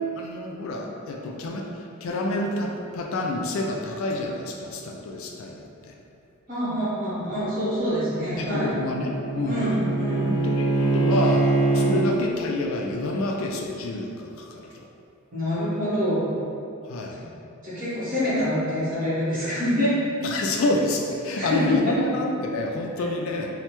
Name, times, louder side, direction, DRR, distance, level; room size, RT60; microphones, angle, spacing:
voice 1, 0.2-5.9 8.3-9.7 10.4-14.9 16.9-17.2 20.2-23.5, left 2 dB, 65° left, 1 dB, 0.3 m, -28 dB
voice 2, 6.5-8.7 9.4-10.3 11.7-12.0 15.3-16.3 17.6-19.9 21.3-22.0, equal, 40° right, -11 dB, 1.0 m, -26 dB
Bowed string instrument, 8.2-12.1, right 3 dB, 15° right, 0.7 m, -24 dB
3.2 x 2.0 x 2.9 m, 2.6 s
head